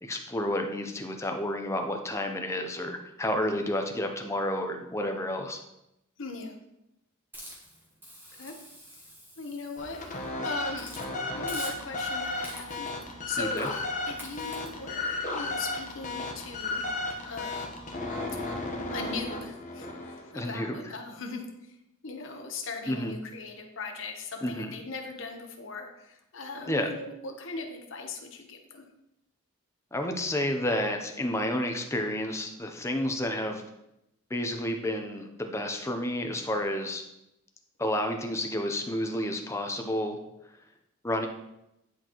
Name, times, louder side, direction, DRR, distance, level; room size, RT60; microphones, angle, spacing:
voice 1, 0.0-5.6 13.4-13.7 20.3-20.8 22.9-23.2 24.4-24.7 26.7-26.9 29.9-33.6 34.3-37.0 37.8-40.2 41.0-41.3, left 1 dB, 15° left, 4 dB, 0.6 m, -30 dB
voice 2, 6.2-6.6 8.3-8.5 9.4-10.0 10.4-12.9 13.3-16.9 17.2-17.7 18.9-21.5 22.0-28.8, left 3 dB, 60° left, 4 dB, 1.0 m, -39 dB
Hiss, 7.3-10.2 10.7-11.1 11.5-12.1 12.4-12.9 13.6-13.8 14.2-14.7, equal, 10° right, 1.3 m, -45 dB
sound 1, 9.8-20.3, left 2 dB, 35° left, 0.9 m, -34 dB
10.5 x 4.4 x 3.0 m, 0.86 s
head